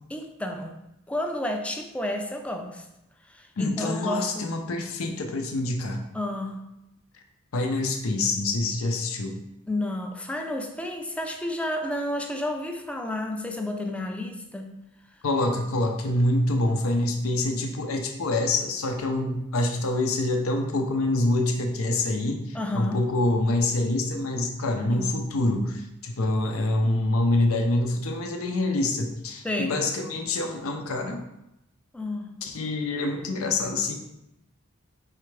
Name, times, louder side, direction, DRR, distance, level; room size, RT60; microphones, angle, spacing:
voice 1, 0.1-0.8 1.1-2.9 3.3-4.5 6.1-6.6 9.7-14.7 22.5-23.0 24.9-25.1 29.4-29.8 31.9-32.3, left 1 dB, 5° left, 4 dB, 0.4 m, -31 dB
voice 2, 3.6-6.0 7.5-9.4 15.2-31.2 32.4-33.9, left 2 dB, 75° left, 4 dB, 0.6 m, -26 dB
4.8 x 3.3 x 3.2 m, 0.87 s
head